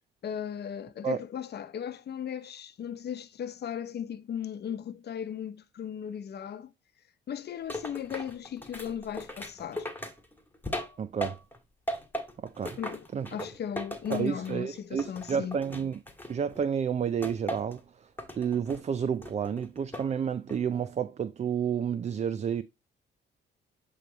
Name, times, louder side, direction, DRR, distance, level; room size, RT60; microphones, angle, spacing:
voice 1, 0.2-6.7 7.3-9.9 12.8-15.6, left 8 dB, 55° left, 0.8 m, -37 dB
sound 1, 7.7-11.6 11.9-14.7 15.0-16.6 17.2-17.8 18.2-18.8 19.2-20.1 20.5-20.9, equal, 10° left, 1.6 m, -38 dB
voice 2, 11.0-11.4 12.4-12.8 13.1-13.3 14.1-16.0 16.3-18.1 18.4-22.6, right 7 dB, 35° right, 0.4 m, -30 dB
8.4 x 3.3 x 3.9 m
cardioid pair, 90°, 20 cm